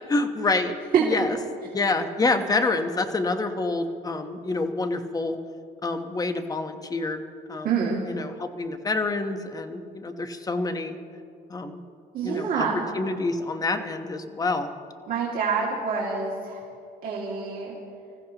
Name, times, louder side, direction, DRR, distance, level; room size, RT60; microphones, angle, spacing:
voice 1, 0.1-1.4 1.7-5.4 5.8-7.2 7.5-7.7 8.0-11.0 11.5-11.8 12.2-12.7 12.9-14.7, left 3 dB, 20° left, 7 dB, 1.1 m, -27 dB
voice 2, 7.6-8.0 12.1-12.8 15.1-16.6 17.0-17.7, right 6 dB, 60° right, -4 dB, 2.4 m, -26 dB
26.0 x 15.0 x 3.0 m, 2.4 s
cardioid pair, 110°, 17 cm